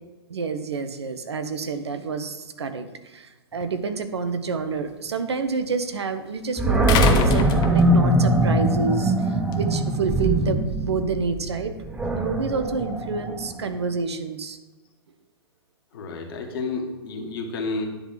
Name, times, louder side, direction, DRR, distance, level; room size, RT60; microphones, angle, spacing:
voice 1, 0.3-11.7 12.1-14.6, right 4 dB, 75° right, 9 dB, 0.9 m, -28 dB
sound 1, 3.6-3.7 6.9-8.2 9.5-9.6, left 3 dB, 30° left, 1.0 m, -22 dB
Animal, 6.6-13.7, right 1 dB, 10° right, 0.8 m, -22 dB
voice 2, 15.9-17.9, left 3 dB, 55° left, 2 dB, 1.9 m, -30 dB
10.0 x 4.0 x 7.4 m, 1.1 s
figure-of-eight pair, 115°, 14 cm